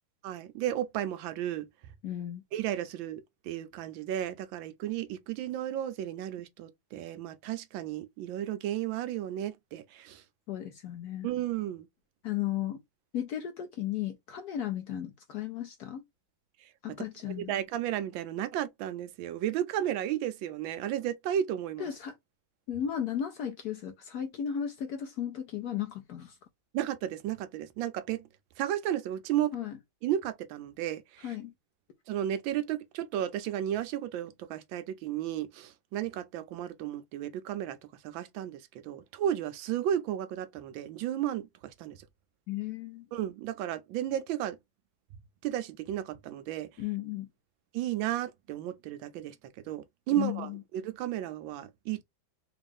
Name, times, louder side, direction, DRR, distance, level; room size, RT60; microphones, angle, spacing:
voice 1, 0.2-1.7 2.5-10.2 11.2-11.9 17.3-21.9 26.7-28.2 28.6-29.6 30.0-31.4 32.1-37.8 38.0-42.0 43.1-44.6 45.4-46.7 47.7-49.3 49.7-52.0, right 11 dB, 80° right, 1.3 m, -33 dB
voice 2, 2.0-2.4 10.5-11.3 12.2-12.8 13.1-16.0 16.8-17.5 21.8-22.1 22.7-26.4 29.5-29.8 31.2-31.5 42.5-43.1 46.8-47.3 50.2-50.6, left 10 dB, 70° left, 1.0 m, -35 dB
3.7 x 2.4 x 3.4 m
omnidirectional pair, 2.2 m